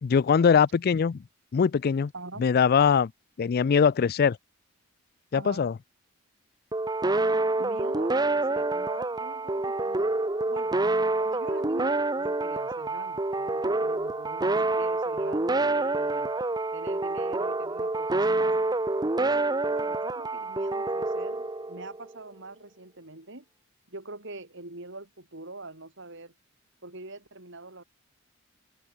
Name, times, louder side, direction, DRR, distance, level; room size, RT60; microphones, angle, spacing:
voice 1, 0.0-1.2 1.5-2.1 2.4-3.1 3.4-4.4 5.3-5.7, left 6 dB, 45° left, 0.3 m, -22 dB
voice 2, 5.3-5.7 7.6-10.1 10.5-10.8 11.2-16.3 16.7-18.6 19.2-23.4 23.9-26.3 26.8-27.8, right 2 dB, 60° right, 4.5 m, -43 dB
sound 1, 6.7-22.1, right 2 dB, 20° right, 0.7 m, -27 dB
head